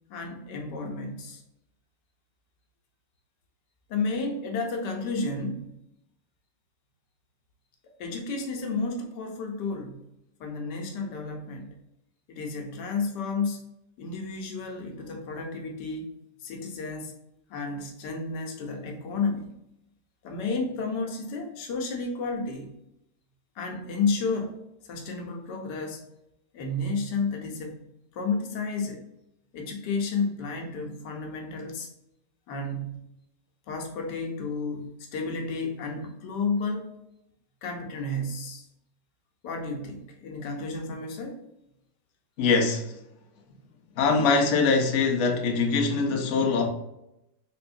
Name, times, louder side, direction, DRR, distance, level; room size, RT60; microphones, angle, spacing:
voice 1, 0.1-1.4 3.9-5.7 8.0-10.0 10.4-11.7 12.3-13.6 14.0-16.2 16.4-17.1 17.5-19.5 20.2-22.7 23.6-24.6 24.9-26.1 26.5-27.8 28.1-29.0 29.5-31.9 32.5-33.0 33.7-36.9 37.6-38.6 39.4-41.4, left 3 dB, 90° left, 1.4 m, -32 dB
voice 2, 42.4-42.9 44.0-46.7, left 4 dB, 60° left, 0.8 m, -23 dB
3.8 x 3.4 x 2.5 m
omnidirectional pair, 1.8 m